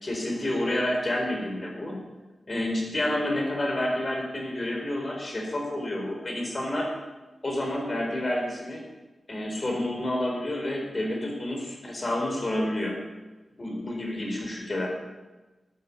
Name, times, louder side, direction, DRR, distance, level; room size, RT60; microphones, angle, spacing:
voice 1, 0.0-2.0 2.5-6.9 7.4-8.9 9.3-13.0 13.6-14.9, left 1 dB, 35° left, 0 dB, 4.4 m, -29 dB
13.5 x 12.5 x 7.4 m, 1.2 s
wide cardioid pair, 145°, 0 cm